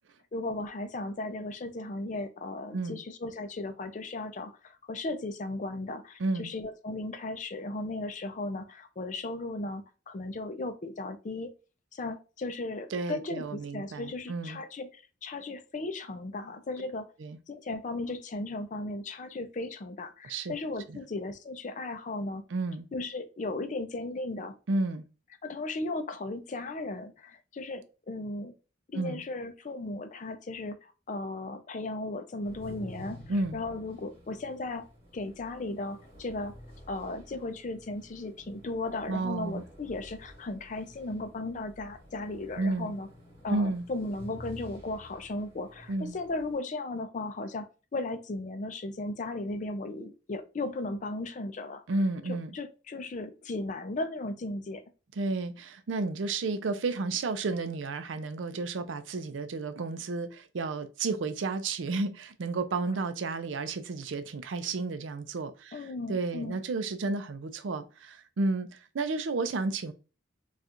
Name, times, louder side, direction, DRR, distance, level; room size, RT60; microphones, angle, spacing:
voice 1, 0.3-11.5 11.9-17.1 17.5-22.4 22.9-24.6 25.4-28.5 28.9-33.2 33.5-34.9 35.1-36.5 36.9-43.1 43.4-51.8 52.3-54.8 65.7-66.6, left 2 dB, 40° left, 0.4 m, -36 dB
voice 2, 6.2-6.5 12.9-14.6 17.2-17.4 20.2-20.5 20.9-21.0 22.5-22.9 24.7-25.1 28.9-29.2 33.3-33.6 39.1-39.6 42.6-42.9 43.5-43.9 45.9-46.1 51.9-52.5 55.2-69.9, right 3 dB, 75° right, 0.4 m, -32 dB
sound 1, 32.4-46.6, equal, 30° right, 1.6 m, -50 dB
4.2 x 2.4 x 2.4 m
head